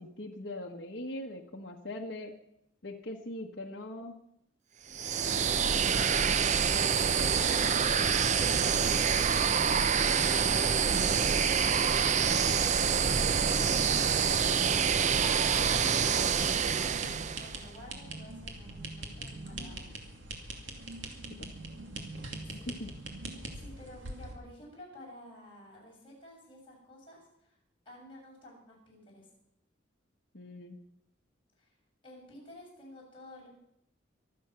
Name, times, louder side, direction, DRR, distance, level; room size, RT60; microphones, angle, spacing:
voice 1, 0.0-2.3 2.8-4.2 21.4-21.5 22.3-22.9 30.3-30.8, left 1 dB, 60° left, 0 dB, 1.3 m, -41 dB
sound 1, 4.9-17.6, right 6 dB, 40° right, 0.5 m, -26 dB
voice 2, 6.2-8.3 8.8-16.4 16.8-20.1 22.4-22.8 23.5-27.6 27.9-29.3 31.6-31.7 32.0-33.5, left 1 dB, 30° left, -4 dB, 7.1 m, -52 dB
sound 2, 16.5-24.3, right 2 dB, 75° right, 2.5 m, -43 dB
24.0 x 8.7 x 6.0 m, 0.76 s
head